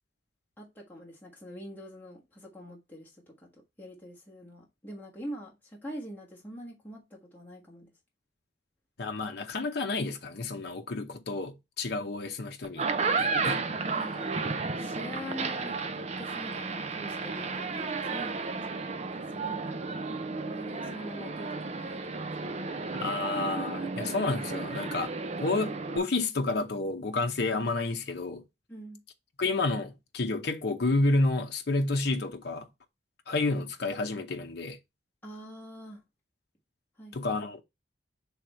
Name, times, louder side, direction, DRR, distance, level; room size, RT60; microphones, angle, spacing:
voice 1, 0.6-7.9 14.0-14.3 14.8-19.1 19.3-19.6 20.4-22.0 28.7-29.0 35.2-36.0 37.0-37.3, equal, 10° left, 1.4 m, -44 dB
voice 2, 9.0-12.9 13.2-13.6 22.9-25.1 25.4-28.4 29.4-32.7 33.3-34.8 37.1-37.6, left 2 dB, 60° left, 0.8 m, -30 dB
sound 1, 12.6-26.0, right 4 dB, 40° right, 0.6 m, -33 dB
6.2 x 3.6 x 4.3 m
head